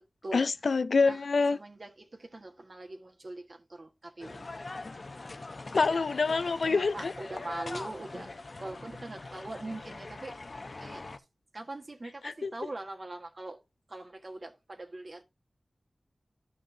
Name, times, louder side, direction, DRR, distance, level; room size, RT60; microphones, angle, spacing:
voice 1, 0.3-1.6 5.7-7.1 12.2-12.5, left 4 dB, 85° left, 0.4 m, -26 dB
voice 2, 1.5-4.4 6.6-8.3 8.6-10.3 10.8-11.1 11.5-13.6 13.9-15.2, right 2 dB, 50° right, 1.5 m, -42 dB
sound 1, 4.2-11.2, left 3 dB, 60° left, 0.8 m, -42 dB
12.0 x 5.3 x 2.8 m
wide cardioid pair, 50°, 0 cm